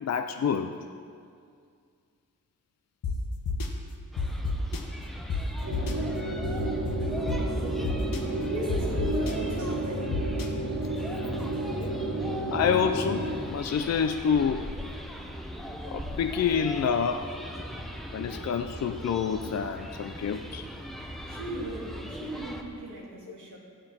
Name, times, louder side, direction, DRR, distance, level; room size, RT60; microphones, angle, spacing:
voice 1, 0.0-0.7 12.5-14.7 15.8-17.3 18.1-20.7, left 7 dB, 50° left, 6 dB, 0.4 m, -27 dB
sound 1, 3.0-3.1 3.5-3.7 4.2-4.8 5.3-5.4 5.7-5.9 6.4-7.4 7.8-8.2 8.7-9.3 10.1-10.5, left 5 dB, 75° left, 1.2 m, -29 dB
sound 2, 4.1-22.6, equal, ahead, 0.8 m, -39 dB
sound 3, 5.6-13.4, right 2 dB, 80° right, 2.9 m, -32 dB
voice 2, 8.5-10.1 21.3-23.6, right 1 dB, 60° right, -5 dB, 3.0 m, -36 dB
14.5 x 10.0 x 4.3 m, 2.2 s
wide cardioid pair, 180°, 34 cm